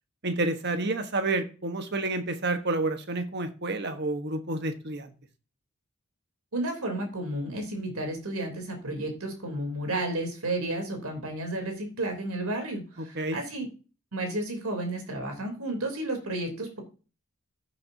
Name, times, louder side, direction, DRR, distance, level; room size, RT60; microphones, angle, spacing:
voice 1, 0.2-5.1 13.0-13.4, right 2 dB, 50° right, 7 dB, 1.3 m, -29 dB
voice 2, 6.5-13.7 14.1-16.8, right 1 dB, 80° right, 3 dB, 3.3 m, -32 dB
14.5 x 7.6 x 2.8 m, 0.35 s
head